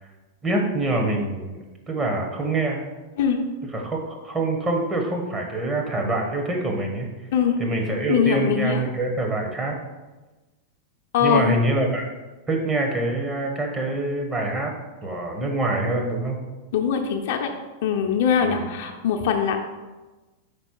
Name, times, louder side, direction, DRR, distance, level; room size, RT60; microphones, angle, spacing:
voice 1, 0.4-2.8 3.7-7.1 7.6-9.8 11.2-12.1 12.5-14.7 15.0-16.4 18.4-18.7, right 2 dB, 20° right, 1 dB, 1.3 m, -25 dB
voice 2, 8.1-8.8 11.1-11.6 16.7-17.5 17.8-19.6, left 7 dB, 65° left, 4 dB, 0.7 m, -22 dB
5.2 x 4.1 x 4.7 m, 1.2 s
hypercardioid pair, 100°, 0 cm